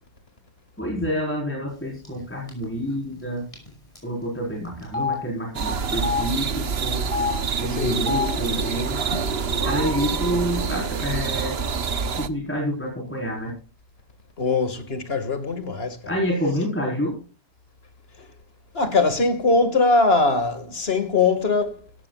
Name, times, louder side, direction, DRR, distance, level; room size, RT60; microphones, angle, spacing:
voice 1, 0.8-3.4 4.0-7.0 7.6-9.0 9.6-11.6 12.2-13.5 16.1-17.2, equal, 10° left, 4.6 m, -28 dB
Telephone, 2.1-2.2 2.5-2.6 3.5-3.7 4.0-4.1 4.8-5.2 5.9-6.2 7.0-7.3 7.9-8.3 9.1-9.2 9.5-10.1, left 5 dB, 30° left, 6.6 m, -27 dB
sound 1, 5.5-12.3, right 5 dB, 70° right, 1.2 m, -26 dB
voice 2, 7.7-8.0 14.4-16.0 18.2-18.3 18.7-21.9, left 3 dB, 65° left, 2.3 m, -21 dB
17.5 x 14.0 x 2.4 m
omnidirectional pair, 1.1 m